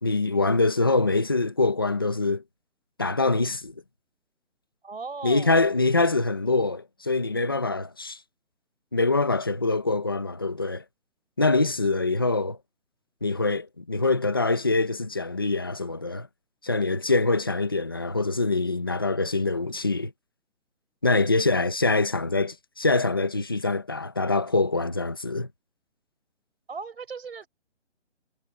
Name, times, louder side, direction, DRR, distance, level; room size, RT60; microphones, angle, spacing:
voice 1, 0.0-2.4 3.0-3.7 5.2-8.2 8.9-10.8 11.4-12.6 13.2-16.3 16.6-20.1 21.0-25.5, left 3 dB, 20° left, 0.8 m, -24 dB
voice 2, 4.8-5.6 26.7-27.5, right 4 dB, 60° right, 4.6 m, -37 dB
hypercardioid pair, 175°, 35 cm